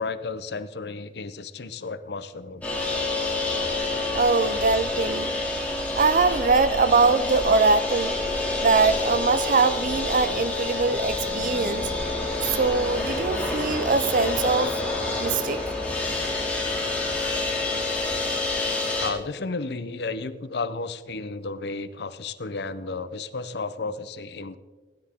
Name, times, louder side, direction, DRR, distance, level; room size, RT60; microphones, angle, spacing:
voice 1, 0.0-2.7 19.0-24.6, left 3 dB, 65° left, 0.7 m, -33 dB
sound 1, 2.6-19.1, left 2 dB, 10° left, 2.6 m, -27 dB
voice 2, 4.1-5.3 5.9-8.1 8.6-11.9 12.4-14.7 15.2-15.6, right 4 dB, 50° right, 0.6 m, -22 dB
17.0 x 10.5 x 3.7 m
head